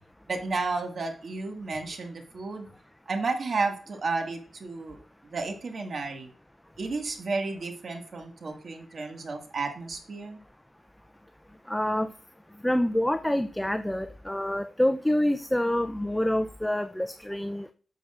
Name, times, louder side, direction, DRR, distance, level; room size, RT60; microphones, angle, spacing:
voice 1, 0.3-2.7 3.1-5.0 5.3-6.3 6.8-10.4, right 3 dB, 55° right, 4 dB, 1.8 m, -32 dB
voice 2, 11.7-12.1 12.6-17.7, left 1 dB, 10° left, 9 dB, 0.5 m, -27 dB
9.9 x 7.0 x 2.5 m, 0.41 s
cardioid pair, 75°, 0 cm